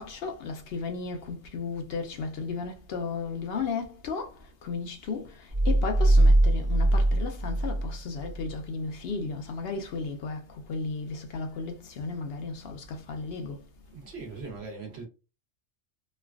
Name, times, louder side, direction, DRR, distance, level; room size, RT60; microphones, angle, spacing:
voice 1, 0.0-4.3 4.6-5.3 5.7-10.4 10.7-13.6, left 4 dB, 65° left, 0.7 m, -34 dB
sound 1, 5.5-8.5, right 1 dB, 20° right, 0.5 m, -22 dB
voice 2, 13.9-15.1, right 4 dB, 65° right, 1.3 m, -40 dB
3.1 x 2.3 x 2.3 m
omnidirectional pair, 1.2 m